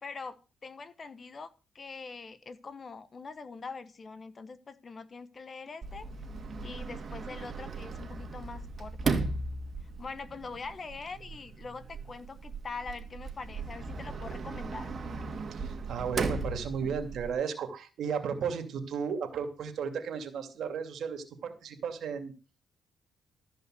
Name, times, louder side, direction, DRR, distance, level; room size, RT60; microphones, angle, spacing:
voice 1, 0.0-6.1 6.6-9.2 10.0-14.9, left 4 dB, 40° left, 1.1 m, -43 dB
Sliding door, 5.8-17.3, right 4 dB, 45° right, 2.0 m, -37 dB
voice 2, 15.5-22.3, right 6 dB, 65° right, 2.5 m, -34 dB
14.0 x 5.2 x 7.8 m
cardioid pair, 90°, 0 cm